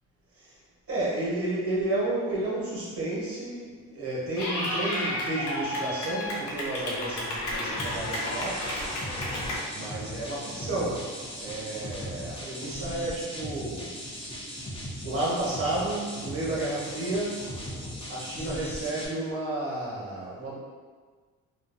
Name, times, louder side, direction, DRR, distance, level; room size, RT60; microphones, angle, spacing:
voice 1, 0.9-8.7 9.7-13.9 15.0-17.4 18.1-20.5, right 2 dB, 50° right, -7 dB, 1.2 m, -31 dB
Clapping / Cheering, 4.4-9.5, left 1 dB, 75° left, 0.7 m, -32 dB
sound 1, 7.8-19.1, equal, 20° left, 0.6 m, -38 dB
2.5 x 2.2 x 2.6 m, 1.5 s
cardioid pair, 90°, 30 cm